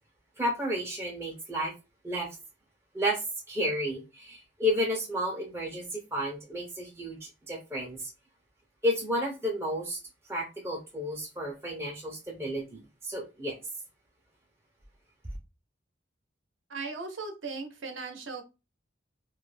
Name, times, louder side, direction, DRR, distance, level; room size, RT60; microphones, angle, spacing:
voice 1, 0.4-1.7 2.0-2.4 2.9-8.1 8.8-10.0 10.3-13.6, equal, 15° right, -1 dB, 0.4 m, -32 dB
voice 2, 16.7-18.4, right 4 dB, 70° right, 5 dB, 0.6 m, -37 dB
2.3 x 2.1 x 3.2 m, 0.28 s
head